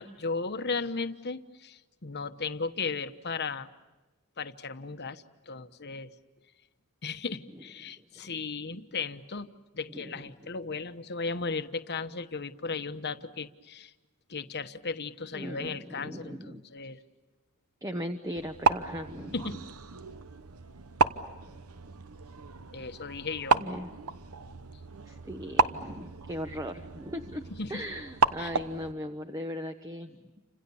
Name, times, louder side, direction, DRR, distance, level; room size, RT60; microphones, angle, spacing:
voice 1, 0.0-3.7 4.4-6.1 7.0-9.5 9.7-13.9 14.3-17.0 19.3-19.6 22.7-23.6 27.6-27.8 28.4-28.5, left 4 dB, 50° left, 10 dB, 1.1 m, -36 dB
voice 2, 9.9-10.3 15.3-16.6 17.8-19.6 23.5-23.9 25.0-30.2, equal, 15° right, 7 dB, 1.0 m, -38 dB
sound 1, 18.4-28.9, right 5 dB, 75° right, 1.0 m, -32 dB
30.0 x 26.5 x 7.1 m, 1.2 s
head